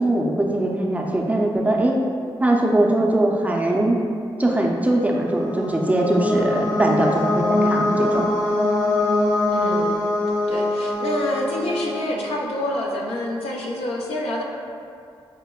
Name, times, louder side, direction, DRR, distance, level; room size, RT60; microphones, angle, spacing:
voice 1, 0.0-2.0 2.4-4.0 4.4-8.2, right 1 dB, 15° right, -1 dB, 0.4 m, -21 dB
sound 1, 4.9-12.7, left 2 dB, 45° left, 0.8 m, -23 dB
voice 2, 9.5-10.0 10.5-14.4, left 1 dB, 90° left, -1 dB, 0.4 m, -27 dB
4.9 x 2.0 x 2.2 m, 2.4 s
cardioid pair, 65°, 10 cm